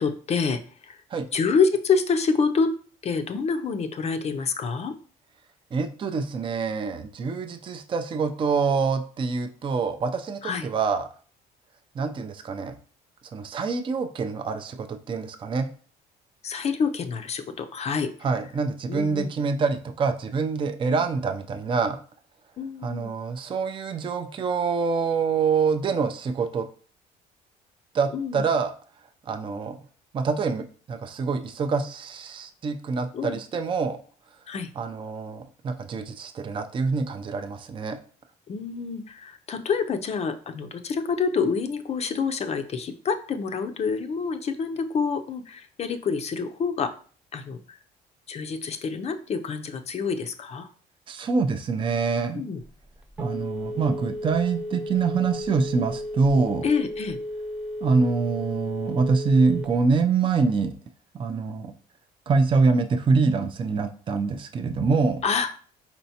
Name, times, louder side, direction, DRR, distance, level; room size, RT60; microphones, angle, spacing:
voice 1, 0.0-1.0 1.3-2.7 3.0-4.9 10.4-10.7 16.4-18.1 18.9-19.3 20.9-21.1 22.6-23.1 28.1-28.4 33.1-33.4 34.5-34.7 38.5-46.9 47.3-47.8 48.3-50.7 52.3-52.6 56.6-57.2 65.2-65.5, left 5 dB, 40° left, 8 dB, 0.5 m, -27 dB
voice 2, 5.7-11.1 12.0-12.8 13.3-15.7 18.2-22.0 22.8-26.7 27.9-28.7 29.3-29.8 30.1-34.0 34.8-38.0 51.1-52.4 53.2-56.6 57.8-60.7 61.1-61.7 62.3-65.2, right 4 dB, 30° right, 7 dB, 0.4 m, -25 dB
Telephone, 52.6-60.0, left 1 dB, 5° right, 0.8 m, -34 dB
4.4 x 4.0 x 2.8 m, 0.43 s
cardioid pair, 110°, 17 cm